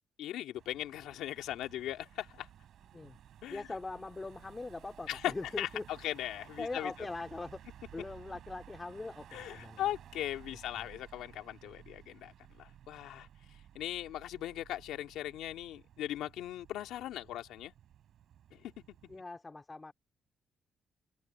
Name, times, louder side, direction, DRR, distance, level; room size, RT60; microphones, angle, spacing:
voice 1, 0.2-2.5 3.4-3.6 5.1-6.9 9.3-13.3 13.7-17.7 18.5-18.7, left 13 dB, 85° left, 2.6 m, -39 dB
Car passing by / Engine, 0.5-19.2, right 10 dB, 70° right, 5.1 m, -56 dB
voice 2, 3.5-5.8 6.6-7.6 7.9-9.8 19.1-19.9, left 3 dB, 20° left, 3.6 m, -41 dB
cardioid pair, 90°, 0 cm